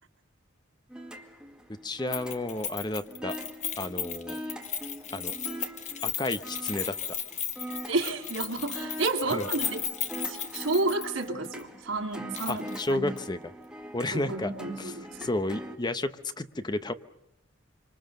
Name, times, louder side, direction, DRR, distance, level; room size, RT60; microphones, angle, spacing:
sound 1, 0.9-15.8, equal, 5° right, 2.0 m, -43 dB
voice 1, 1.7-3.4 3.8-4.4 5.1-5.3 6.0-7.2 9.3-9.5 12.5-13.4 13.9-14.5 14.8-16.9, left 2 dB, 20° left, 11 dB, 0.9 m, -32 dB
Keys jangling, 2.1-11.3 11.6-11.7 12.3-12.9 13.2-13.3, left 8 dB, 40° left, 1.5 m, -35 dB
voice 2, 7.9-9.8 10.3-13.1 14.1-15.3, right 2 dB, 90° right, 3 dB, 2.8 m, -31 dB
26.0 x 26.0 x 6.6 m, 0.80 s
head